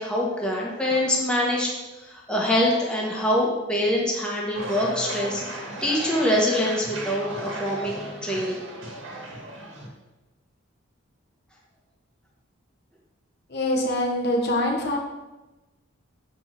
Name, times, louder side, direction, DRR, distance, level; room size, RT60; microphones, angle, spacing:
voice 1, 0.0-8.6, left 1 dB, 5° left, -4 dB, 1.7 m, -25 dB
sound 1, 4.5-9.9, right 2 dB, 65° right, 2.1 m, -35 dB
voice 2, 13.5-15.0, left 1 dB, 50° left, -1 dB, 1.4 m, -24 dB
7.6 x 5.5 x 6.9 m, 1.1 s
head